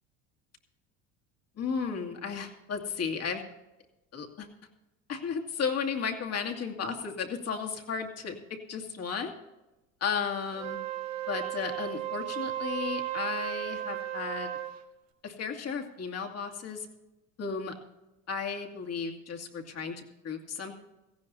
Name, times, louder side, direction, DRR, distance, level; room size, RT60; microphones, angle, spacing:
voice 1, 1.6-3.4 4.1-4.5 5.1-9.3 10.0-10.8 11.3-14.5 15.2-16.9 17.4-17.8 18.3-20.7, left 6 dB, 40° left, 3 dB, 2.4 m, -34 dB
Wind instrument woodwind instrument, 10.5-14.8, right 12 dB, 80° right, 1.9 m, -35 dB
17.5 x 15.0 x 2.8 m, 1.0 s
supercardioid pair, 90°, 38 cm